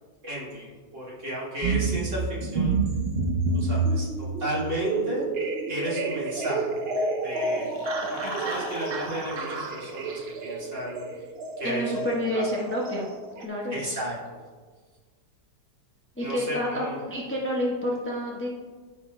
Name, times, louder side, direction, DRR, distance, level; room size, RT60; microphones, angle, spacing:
voice 1, 0.2-2.8 3.5-5.2 5.7-6.8 7.2-11.2 11.6-12.1 12.3-12.7 13.7-14.4 16.2-17.0, equal, 40° right, -7 dB, 2.8 m, -33 dB
sound 1, 1.6-13.4, right 3 dB, 75° right, 0.5 m, -29 dB
sound 2, 7.5-10.6, left 6 dB, 80° left, 1.4 m, -43 dB
voice 2, 11.6-13.1 13.4-13.8 16.2-18.5, equal, 10° left, -4 dB, 0.8 m, -29 dB
13.5 x 5.9 x 2.2 m, 1.5 s
omnidirectional pair, 1.9 m